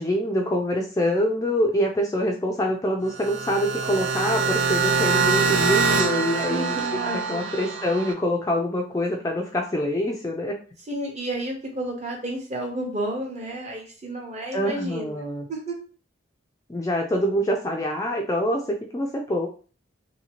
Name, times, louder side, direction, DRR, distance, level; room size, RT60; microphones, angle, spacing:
voice 1, 0.0-10.6 14.5-15.5 16.7-19.5, equal, 15° left, 1 dB, 0.3 m, -25 dB
sound 1, 3.1-8.1, right 5 dB, 85° right, 0.5 m, -24 dB
voice 2, 6.5-7.5 10.9-15.7, right 1 dB, 35° right, 0 dB, 0.8 m, -31 dB
2.8 x 2.7 x 2.9 m, 0.38 s
head